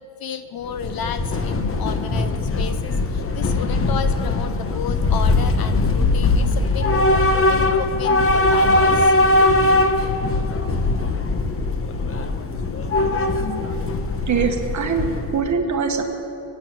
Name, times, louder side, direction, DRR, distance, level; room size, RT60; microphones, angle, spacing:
voice 1, 0.0-9.1, left 7 dB, 55° left, 10 dB, 0.8 m, -32 dB
Train / Subway metro underground, 0.6-15.5, left 2 dB, 30° left, 1.0 m, -20 dB
voice 2, 14.3-16.0, right 6 dB, 40° right, 4 dB, 1.5 m, -22 dB
22.5 x 8.9 x 6.1 m, 3.0 s
cardioid pair, 135°, 44 cm